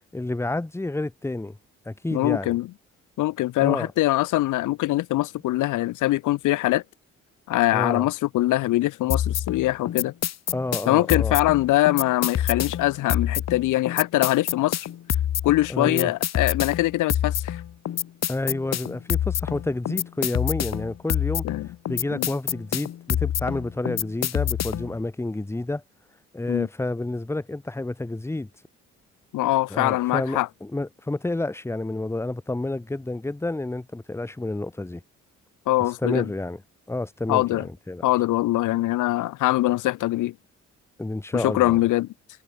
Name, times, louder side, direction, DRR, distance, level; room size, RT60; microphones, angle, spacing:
voice 1, 0.1-1.6 1.9-2.6 3.6-3.9 7.7-8.1 10.5-11.4 15.7-16.1 18.3-21.4 21.9-25.8 26.3-28.5 29.7-35.0 36.0-36.6 36.9-38.1 41.0-41.8, left 2 dB, 10° left, 1.1 m, -29 dB
voice 2, 2.1-2.7 3.2-6.8 7.5-10.1 10.9-14.9 15.4-17.6 21.4-21.7 22.1-22.3 26.5-26.7 29.3-30.5 35.7-36.3 37.3-37.7 38.0-40.3 41.3-42.1, left 16 dB, 85° left, 0.9 m, -23 dB
sound 1, 9.1-25.0, left 10 dB, 60° left, 1.5 m, -27 dB
cardioid pair, 90°, 30 cm